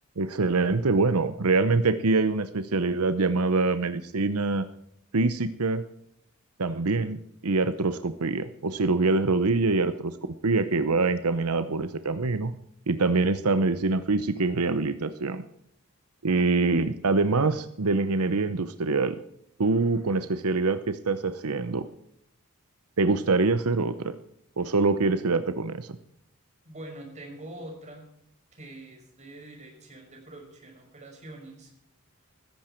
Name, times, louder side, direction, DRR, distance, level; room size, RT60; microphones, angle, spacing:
voice 1, 0.2-4.7 5.1-5.8 6.6-10.1 10.4-12.5 12.9-15.4 16.2-19.1 19.6-21.9 23.0-24.1 24.6-26.0, right 3 dB, 90° right, 11 dB, 0.9 m, -25 dB
voice 2, 26.6-28.0 28.5-31.7, right 1 dB, 35° right, 1 dB, 5.9 m, -44 dB
15.5 x 14.5 x 4.5 m, 0.73 s
head